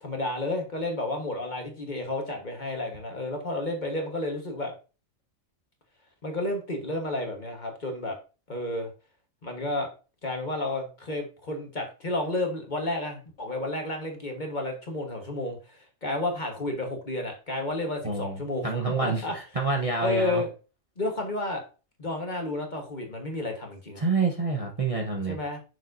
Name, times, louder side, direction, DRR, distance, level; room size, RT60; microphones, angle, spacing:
voice 1, 0.0-4.7 6.2-8.2 8.5-8.9 9.4-9.9 10.2-19.3 20.0-20.5 21.0-21.6 22.0-24.0 25.3-25.6, left 2 dB, 35° left, 3 dB, 1.5 m, -31 dB
voice 2, 18.0-19.2 19.5-20.4 24.0-25.4, right 4 dB, 30° right, -1 dB, 0.9 m, -27 dB
7.2 x 6.3 x 2.6 m, 0.34 s
omnidirectional pair, 1.4 m